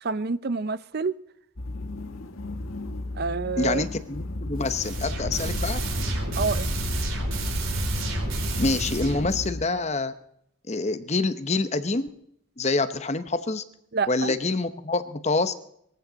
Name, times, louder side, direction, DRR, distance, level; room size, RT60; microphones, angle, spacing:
voice 1, 0.0-1.1 3.2-3.8 6.4-6.7 13.9-14.3, right 4 dB, 50° right, 16 dB, 0.6 m, -28 dB
sound 1, 1.6-9.7, left 2 dB, 80° left, 1.6 m, -35 dB
voice 2, 3.6-5.8 8.6-10.1 10.7-12.1 12.6-13.6 14.1-15.5, left 3 dB, 30° left, 11 dB, 0.9 m, -26 dB
sound 2, 4.6-9.5, right 1 dB, 80° right, 5.7 m, -29 dB
23.5 x 14.5 x 4.0 m, 0.72 s
head